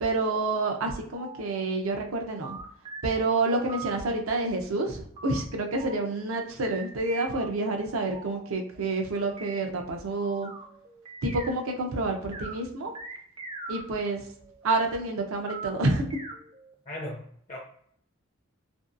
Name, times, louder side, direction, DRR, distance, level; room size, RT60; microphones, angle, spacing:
voice 1, 0.0-2.6 3.0-10.5 11.2-12.9 13.7-14.2 14.6-16.1, right 2 dB, 80° right, 3 dB, 0.5 m, -28 dB
sound 1, 1.0-1.6 2.0-3.9 5.2-5.4 5.8-6.4 6.6-11.9 12.2-12.5 12.9-14.8 15.5-16.7, right 3 dB, 25° right, 0.3 m, -43 dB
voice 2, 16.9-17.6, left 1 dB, 35° left, -2 dB, 0.4 m, -38 dB
2.6 x 2.2 x 2.4 m, 0.64 s
head